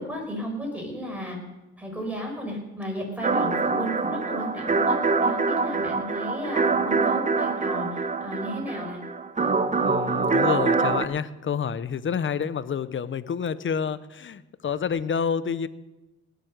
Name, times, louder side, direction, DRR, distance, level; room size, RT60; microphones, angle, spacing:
voice 1, 0.0-1.4 1.8-9.0, equal, 5° right, 0 dB, 5.7 m, -34 dB
sound 1, 3.2-11.0, right 4 dB, 25° right, 0.9 m, -24 dB
voice 2, 9.8-15.7, left 7 dB, 40° left, 16 dB, 0.8 m, -28 dB
19.0 x 7.8 x 6.6 m, 1.0 s
cardioid pair, 90°, 30 cm